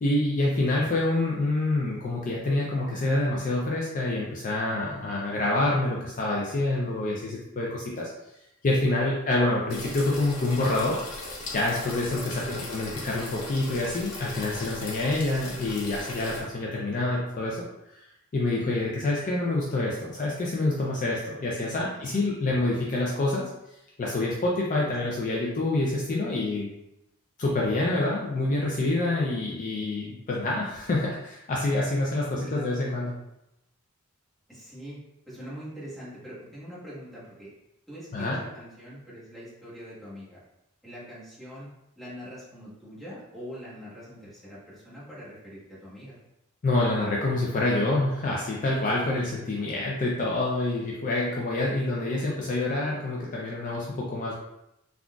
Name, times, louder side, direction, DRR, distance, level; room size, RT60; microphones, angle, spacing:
voice 1, 0.0-8.1 8.6-11.0 11.5-17.6 18.3-23.4 24.0-26.7 27.4-33.2 38.1-38.4 46.6-54.3, left 2 dB, 35° left, -3 dB, 0.4 m, -27 dB
sound 1, 9.7-16.4, left 2 dB, 70° left, 0.7 m, -38 dB
voice 2, 12.4-12.7 21.9-22.5 25.0-25.1 32.4-32.8 34.5-35.0 35.3-37.5 37.9-40.4 40.8-41.7 42.0-46.2 49.6-50.0 51.9-52.2, equal, ahead, -10 dB, 1.1 m, -43 dB
3.7 x 2.3 x 2.3 m, 0.86 s
head